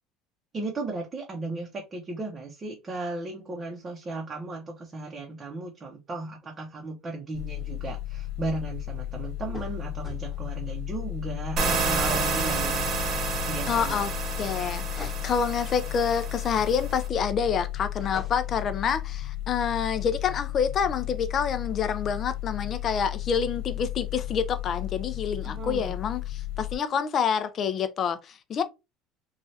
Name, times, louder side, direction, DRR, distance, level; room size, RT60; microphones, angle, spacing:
voice 1, 0.5-12.9 13.5-14.0 25.4-26.0, right 3 dB, 25° right, 0.7 m, -35 dB
sound 1, 7.3-26.8, left 14 dB, 90° left, 1.1 m, -34 dB
sound 2, 9.5-10.2 12.1-12.4 15.0-15.3 18.0-18.6, left 1 dB, 10° left, 1.1 m, -42 dB
sound 3, 11.6-17.1, right 4 dB, 45° right, 1.0 m, -30 dB
voice 2, 13.7-14.1 14.4-28.6, left 7 dB, 40° left, 0.4 m, -27 dB
3.2 x 2.3 x 2.7 m
cardioid pair, 130°, 0 cm